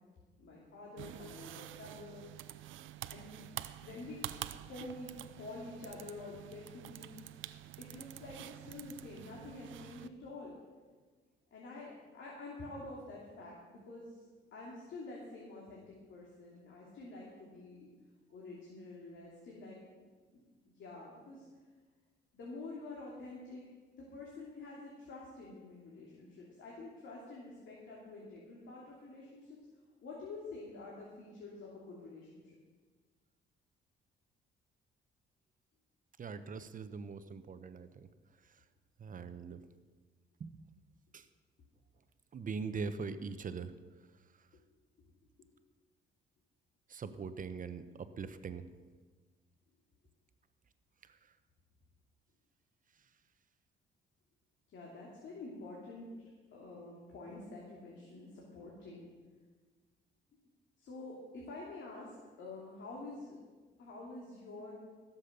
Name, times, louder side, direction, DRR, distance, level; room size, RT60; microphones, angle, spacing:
voice 1, 0.4-2.3 3.1-3.4 3.8-4.3 4.7-5.1 5.4-7.1 7.8-10.5 11.5-17.9 18.3-21.5 22.3-23.6 24.0-29.5 30.0-32.6 54.7-59.1 60.8-63.4 63.8-64.7, left 2 dB, 70° left, -4 dB, 3.0 m, -48 dB
sound 1, 1.0-10.1, right 13 dB, 80° right, 0.6 m, -47 dB
voice 2, 36.2-38.1 38.4-38.6 39.0-39.6 40.4-40.5 41.1-41.3 42.3-43.7 44.4-44.5 46.9-48.7 51.0-51.2, right 5 dB, 45° right, 11 dB, 1.0 m, -42 dB
16.0 x 7.4 x 6.8 m, 1.4 s
cardioid pair, 90°, 20 cm